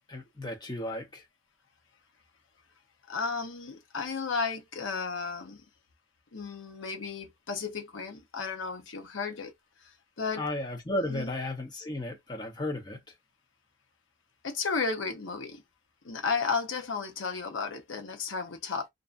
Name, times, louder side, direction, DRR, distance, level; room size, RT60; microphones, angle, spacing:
voice 1, 0.1-1.2 10.3-13.0, left 1 dB, 20° left, 0.8 m, -34 dB
voice 2, 3.1-5.6 6.3-9.5 9.8-10.4 11.1-11.3 14.4-15.6 16.0-18.9, left 4 dB, 75° left, 0.8 m, -33 dB
2.6 x 2.3 x 2.5 m
head